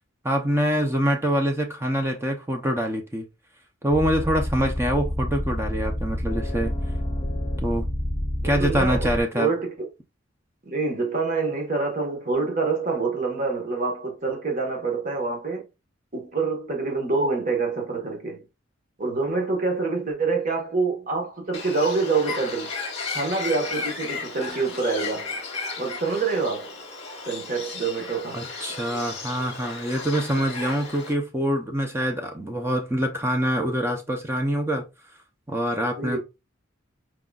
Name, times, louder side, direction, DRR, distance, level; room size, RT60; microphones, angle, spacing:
voice 1, 0.2-3.3 3.8-6.7 7.6-7.9 8.4-9.5 28.3-34.8 35.5-36.2, equal, 10° right, 0.5 m, -25 dB
sound 1, 3.9-9.2, left 1 dB, 15° left, 1.2 m, -28 dB
voice 2, 8.4-9.9 10.6-15.7 16.1-18.4 19.0-22.7 23.1-25.4 25.8-26.8 27.2-28.5 36.0-36.2, right 4 dB, 40° right, 1.3 m, -26 dB
Bird, 21.5-31.1, left 4 dB, 30° left, 1.3 m, -34 dB
4.7 x 3.8 x 2.3 m
head